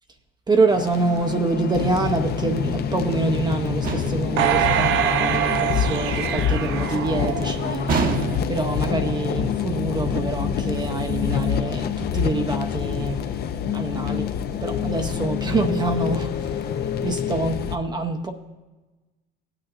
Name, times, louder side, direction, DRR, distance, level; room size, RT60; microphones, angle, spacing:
voice 1, 0.5-8.0 8.5-13.2 13.7-16.7 17.0-18.3, right 3 dB, 20° right, 0.7 m, -26 dB
sound 1, 0.7-17.8, left 7 dB, 50° left, 0.6 m, -26 dB
sound 2, 3.8-4.4 7.9-8.7, right 4 dB, 45° right, 1.1 m, -25 dB
sound 3, 4.4-7.8 8.3-8.4, right 10 dB, 65° right, 0.6 m, -24 dB
16.5 x 8.8 x 2.5 m
cardioid pair, 125°, 21 cm